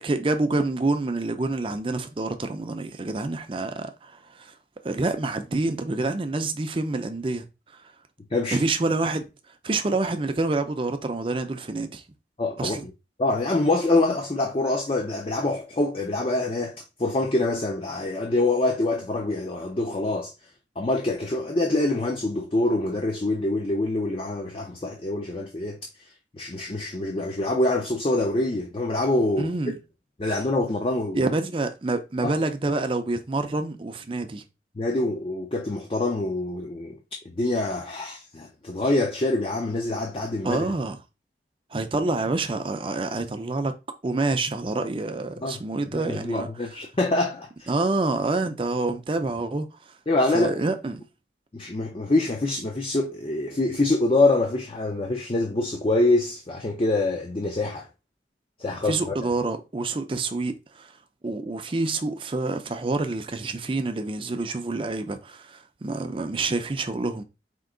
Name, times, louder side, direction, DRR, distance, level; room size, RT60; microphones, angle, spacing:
voice 1, 0.0-4.5 4.8-7.4 7.7-7.8 8.5-9.2 9.6-12.0 12.6-12.8 29.4-29.8 31.1-34.4 40.4-41.0 41.7-43.7 44.0-46.5 47.7-49.7 50.3-51.0 58.9-60.9 61.2-67.2, right 2 dB, 30° right, 0.5 m, -27 dB
voice 2, 12.4-12.8 13.2-20.3 20.8-25.8 26.3-29.5 30.2-31.3 32.2-32.3 34.8-37.0 37.2-40.6 45.4-45.6 45.9-47.7 50.1-50.6 51.5-57.9 58.6-59.1, left 2 dB, 30° left, 0.5 m, -25 dB
4.5 x 2.8 x 3.8 m
head